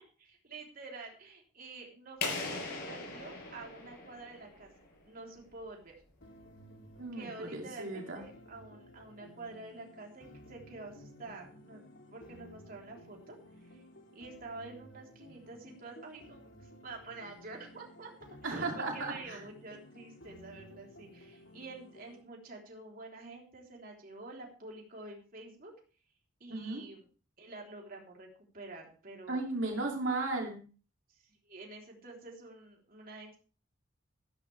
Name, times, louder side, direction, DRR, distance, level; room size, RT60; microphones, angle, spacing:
voice 1, 0.4-4.7 5.0-5.9 7.1-13.3 13.6-13.8 14.1-18.1 18.4-25.7 26.4-27.0 27.4-28.3 28.5-29.4 31.1-33.4, right 3 dB, 45° right, 0 dB, 3.6 m, -48 dB
sound 1, 2.2-4.9, left 4 dB, 55° left, 6.3 m, -39 dB
sound 2, 6.2-22.2, equal, 70° left, 3.2 m, -55 dB
voice 2, 7.0-8.2 18.4-19.4 26.5-26.8 29.3-30.6, right 2 dB, 80° right, 0 dB, 2.7 m, -35 dB
13.5 x 13.0 x 3.4 m, 0.38 s
head